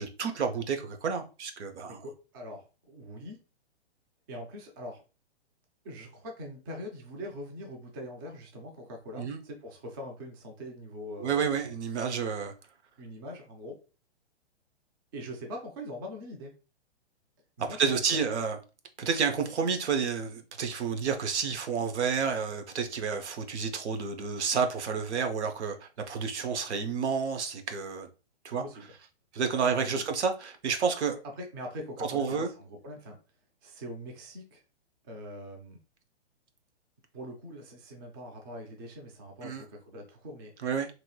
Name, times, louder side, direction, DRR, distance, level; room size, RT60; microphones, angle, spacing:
voice 1, 0.0-2.0 9.2-9.4 11.2-12.5 17.8-18.6 19.0-28.1 28.4-28.6 29.3-31.2 32.0-32.5 39.4-39.6 40.6-40.9, right 6 dB, 75° right, 0.7 m, -30 dB
voice 2, 1.9-3.4 4.3-5.0 5.8-11.7 13.0-13.8 15.1-16.5 17.6-18.0 28.6-28.8 29.7-30.0 31.4-33.2 33.6-34.6 35.1-35.8 37.1-40.7, equal, 20° right, 0.4 m, -42 dB
2.9 x 2.8 x 2.3 m
hypercardioid pair, 150°, 34 cm